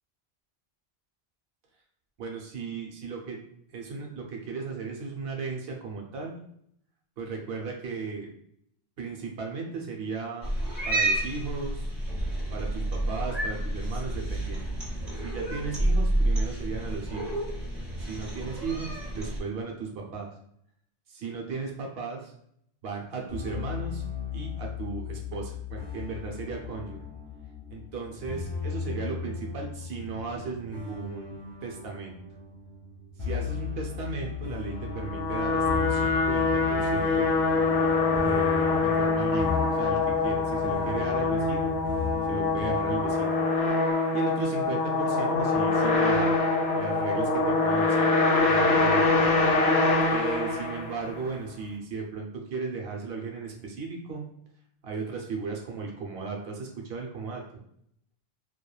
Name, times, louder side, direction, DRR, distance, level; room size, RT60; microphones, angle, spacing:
voice 1, 2.2-3.4 3.7-6.4 7.2-8.3 9.0-10.5 10.8-11.9 12.5-14.7 15.2-17.3 18.0-20.3 21.1-22.3 22.8-24.0 24.3-27.0 27.7-31.3 31.6-32.1 33.2-37.3 38.2-41.7 42.3-43.4 44.1-46.4 46.8-49.3 50.1-54.2 54.8-57.4, right 4 dB, 70° right, 0 dB, 0.8 m, -36 dB
Cat, 10.4-19.4, right 1 dB, 35° right, 1.1 m, -29 dB
sound 1, 23.3-43.1, left 6 dB, 30° left, 1.0 m, -37 dB
sound 2, 34.9-51.2, left 3 dB, 75° left, 0.8 m, -24 dB
3.0 x 2.3 x 2.2 m, 0.69 s
omnidirectional pair, 1.1 m